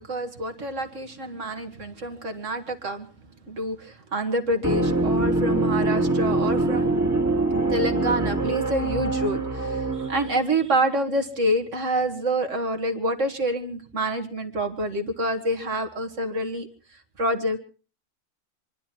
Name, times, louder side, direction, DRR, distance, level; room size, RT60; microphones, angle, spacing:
voice 1, 0.0-3.1 3.5-7.0 7.7-16.7 17.2-17.6, right 1 dB, 65° right, 5 dB, 2.3 m, -27 dB
sound 1, 4.6-10.4, right 2 dB, 15° right, 1.6 m, -24 dB
27.0 x 11.5 x 4.5 m, 0.38 s
omnidirectional pair, 1.4 m